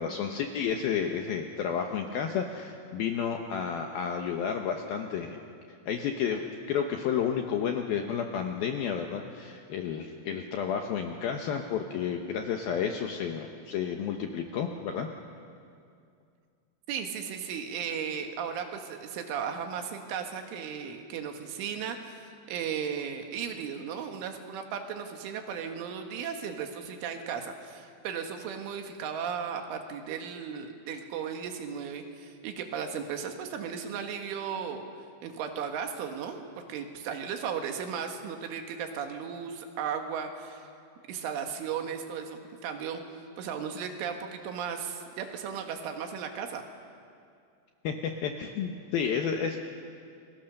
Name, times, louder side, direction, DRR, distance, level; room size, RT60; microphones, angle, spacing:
voice 1, 0.0-5.4 5.9-6.4 6.7-15.1 47.8-49.6, left 7 dB, 75° left, 3 dB, 2.3 m, -31 dB
voice 2, 16.9-34.8 35.2-40.7 41.1-43.0 43.4-46.6, right 7 dB, 85° right, 5 dB, 4.1 m, -36 dB
29.0 x 22.5 x 6.6 m, 2.3 s
omnidirectional pair, 5.5 m